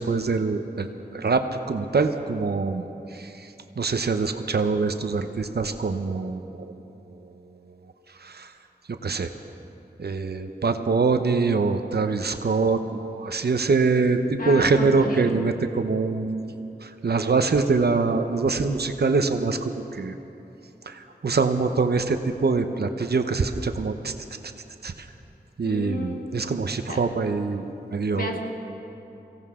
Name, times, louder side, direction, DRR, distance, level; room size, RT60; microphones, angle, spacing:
voice 1, 0.0-1.4 1.7-2.8 3.1-3.3 3.8-6.7 8.2-8.5 9.0-9.3 10.0-16.6 16.8-20.1 20.9-24.1 24.8-24.9 25.6-28.4, right 4 dB, 70° right, 7 dB, 0.9 m, -24 dB
voice 2, 14.4-15.4 25.6-26.2 26.9-27.0 28.2-28.4, left 2 dB, 55° left, 0 dB, 1.9 m, -32 dB
23.5 x 16.5 x 3.7 m, 3.0 s
wide cardioid pair, 85°, 17 cm